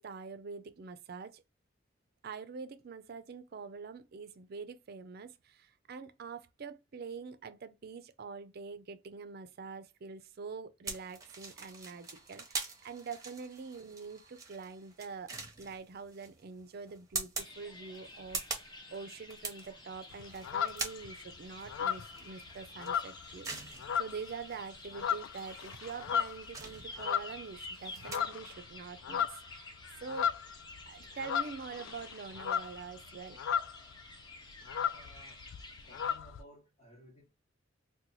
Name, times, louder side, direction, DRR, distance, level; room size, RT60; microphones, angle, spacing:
voice 1, 0.0-1.4 2.2-29.3 29.5-29.7 30.0-30.3 30.9-33.4, right 5 dB, 50° right, 0.4 m, -45 dB
sound 1, 10.9-28.2, right 4 dB, 15° right, 0.7 m, -44 dB
sound 2, 17.4-36.2, left 2 dB, 20° left, 0.6 m, -51 dB
sound 3, 20.1-21.2 21.6-23.5 23.8-24.3 24.8-27.7 28.0-28.6 28.9-33.9 34.2-34.3 34.5-36.4, left 8 dB, 70° left, 0.3 m, -35 dB
voice 2, 34.9-35.4 35.9-37.3, equal, 40° left, 0.9 m, -57 dB
2.9 x 2.2 x 3.9 m
head